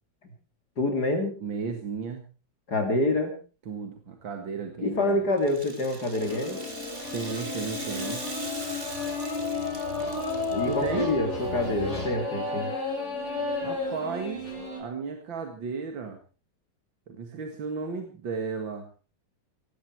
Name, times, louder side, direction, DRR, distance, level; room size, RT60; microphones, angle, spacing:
voice 1, 0.8-1.3 2.7-3.3 4.8-6.6 10.5-12.7, left 2 dB, 55° left, 4 dB, 3.4 m, -26 dB
voice 2, 1.4-2.3 3.7-5.2 7.1-8.2 10.7-11.1 13.6-14.5 14.8-16.2 17.1-18.9, right 5 dB, 85° right, 5 dB, 2.6 m, -34 dB
Rattle (instrument), 5.4-10.9, right 2 dB, 30° right, 2.8 m, -41 dB
sound 1, 6.2-14.8, left 3 dB, 35° left, 6.1 m, -32 dB
18.5 x 16.0 x 4.6 m, 0.35 s
omnidirectional pair, 2.0 m